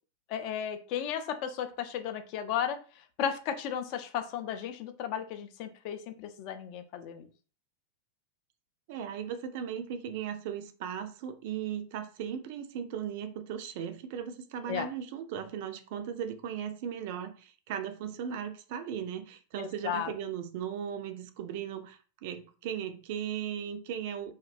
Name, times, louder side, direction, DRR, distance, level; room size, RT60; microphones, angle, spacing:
voice 1, 0.3-2.8 3.2-7.3 14.7-14.9 19.6-20.1, left 9 dB, 45° left, 0.3 m, -34 dB
voice 2, 8.9-24.3, right 8 dB, 50° right, 0.3 m, -37 dB
2.5 x 2.1 x 2.4 m
figure-of-eight pair, 90°, 0 cm